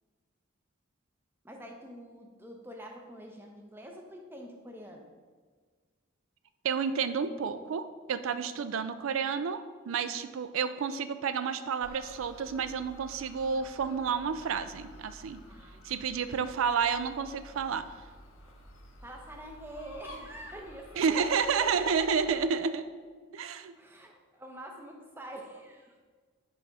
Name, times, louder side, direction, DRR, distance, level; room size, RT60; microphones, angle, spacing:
voice 1, 1.4-5.1 8.3-8.4 15.5-16.1 19.0-22.1 23.8-26.0, right 1 dB, 10° right, 1 dB, 0.6 m, -46 dB
voice 2, 6.6-15.4 15.8-17.8 21.0-22.8 23.3-23.7, right 6 dB, 80° right, 12 dB, 0.4 m, -30 dB
sound 1, 11.8-22.4, equal, 80° left, 0.8 m, -51 dB
5.7 x 4.9 x 4.0 m, 1.5 s
head